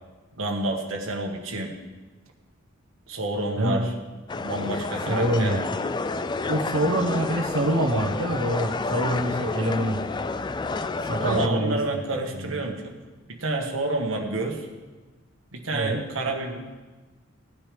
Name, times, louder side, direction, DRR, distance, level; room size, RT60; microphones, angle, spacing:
voice 1, 0.4-1.7 3.1-3.9 4.4-5.6 11.2-12.9 13.3-14.7 15.5-16.6, right 2 dB, 70° right, 1 dB, 1.6 m, -29 dB
sound 1, 4.3-11.5, left 3 dB, 20° left, 0.3 m, -30 dB
voice 2, 5.1-5.8 6.5-10.0 11.1-11.8 12.4-12.5 15.7-16.0, right 1 dB, 85° right, 0 dB, 1.2 m, -25 dB
17.5 x 9.8 x 3.4 m, 1.3 s
head